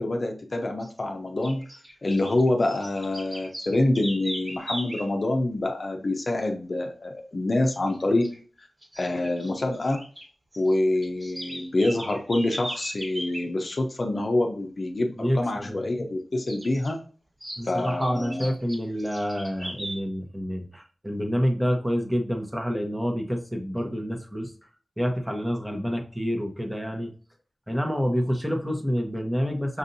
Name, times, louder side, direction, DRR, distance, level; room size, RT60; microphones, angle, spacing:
voice 1, 0.0-1.6 2.0-8.3 8.6-8.7 9.0-10.0 10.6-17.0 17.7-18.5, left 2 dB, 50° left, 3 dB, 0.7 m, -26 dB
sound 1, 0.8-1.0 1.4-5.1 7.7-8.4 8.8-10.3 10.5-13.5 16.5-16.9 17.4-20.0, right 1 dB, 30° right, 1.5 m, -38 dB
voice 2, 15.2-15.8 17.6-24.5 25.0-27.1 27.7-29.8, equal, 10° right, 3 dB, 0.9 m, -28 dB
5.4 x 2.6 x 2.6 m, 0.41 s
wide cardioid pair, 70°, 0 cm